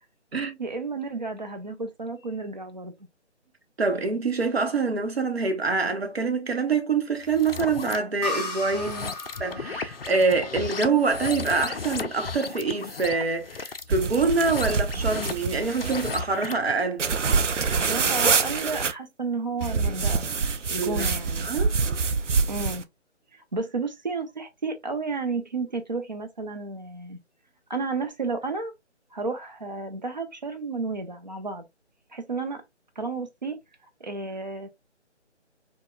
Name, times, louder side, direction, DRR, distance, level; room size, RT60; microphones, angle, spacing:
voice 1, 0.6-2.9 8.7-9.1 17.7-20.3 20.7-21.5 22.5-22.8 23.3-27.2 27.7-28.7 29.1-31.7 32.1-32.6 33.0-33.6 34.0-34.7, right 3 dB, 40° right, 0.6 m, -32 dB
voice 2, 3.8-8.9 9.4-17.0 20.8-21.0 21.4-21.7, right 4 dB, 60° right, 0.9 m, -25 dB
sound 1, 7.2-8.0 8.7-16.7, left 4 dB, 55° left, 0.5 m, -35 dB
sound 2, 8.2-11.8, left 3 dB, 35° left, 1.1 m, -36 dB
sound 3, 13.9-16.2 17.0-18.9 19.6-22.8, right 5 dB, 90° right, 0.5 m, -26 dB
4.9 x 2.2 x 2.2 m
figure-of-eight pair, 150°, 36 cm